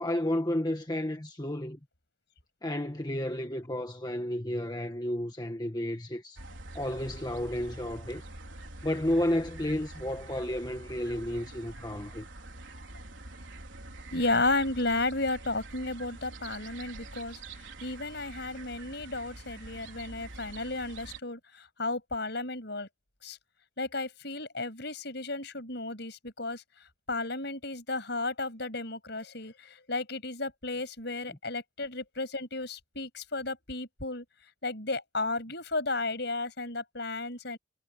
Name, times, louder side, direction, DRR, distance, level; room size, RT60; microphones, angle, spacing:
voice 1, 0.0-1.8 2.6-6.4 6.7-8.2 8.8-12.2, left 1 dB, 20° left, 1.5 m, -32 dB
sound 1, 6.4-21.2, right 2 dB, 70° right, 4.2 m, -46 dB
voice 2, 14.1-17.4 17.8-22.9 23.2-23.4 23.8-26.6 27.1-34.2 34.6-37.6, left 2 dB, 55° left, 7.1 m, -33 dB
head